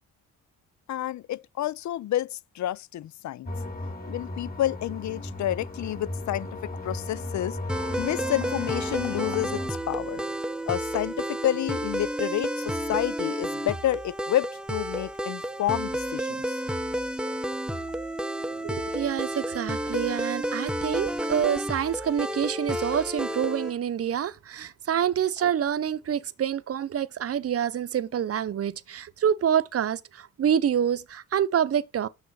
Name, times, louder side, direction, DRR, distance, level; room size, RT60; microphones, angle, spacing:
voice 1, 0.9-3.5 4.1-7.6 8.0-10.2 10.7-16.6, left 13 dB, 60° left, 0.5 m, -29 dB
sound 1, 3.5-9.7, left 2 dB, 25° left, 3.8 m, -36 dB
sound 2, 7.7-23.7, equal, 5° right, 0.7 m, -31 dB
voice 2, 18.6-32.1, right 9 dB, 45° right, 0.7 m, -27 dB
6.7 x 6.3 x 5.9 m
cardioid pair, 75°, 32 cm